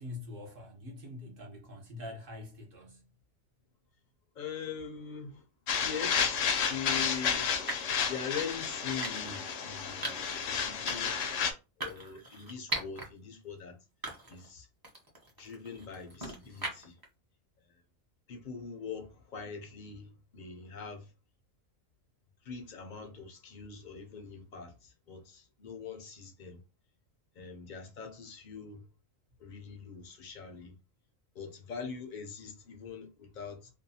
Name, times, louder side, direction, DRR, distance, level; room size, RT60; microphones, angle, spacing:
voice 1, 0.0-3.1, left 2 dB, 45° right, 1.0 m, -44 dB
voice 2, 4.4-5.4 5.8-7.8 8.1-11.2 11.8-13.8 14.3-14.7 15.4-17.0 17.7-17.8 18.3-21.1 22.4-26.6 27.4-28.8 29.4-30.7 31.3-33.7, left 6 dB, 50° left, 0.6 m, -42 dB
sound 1, 5.7-11.5, left 7 dB, 75° left, 0.9 m, -31 dB
sound 2, 6.4-6.6 7.7-8.0 9.0-9.4 10.0-10.4 10.9-11.2 11.8-13.1 13.5-13.6 14.0-14.5 14.8-17.0, right 2 dB, 25° right, 0.5 m, -40 dB
2.6 x 2.2 x 2.7 m
omnidirectional pair, 1.4 m